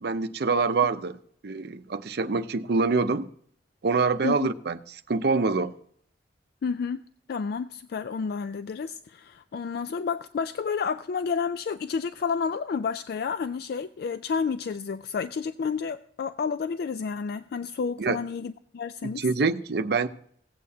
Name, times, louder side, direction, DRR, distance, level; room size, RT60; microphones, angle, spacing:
voice 1, 0.0-1.2 1.4-3.3 3.8-4.8 5.1-5.7 18.0-18.2 19.0-20.1, right 4 dB, 60° right, 0.6 m, -25 dB
voice 2, 6.6-7.0 7.3-19.2, left 5 dB, 60° left, 0.3 m, -30 dB
16.5 x 8.4 x 2.7 m
head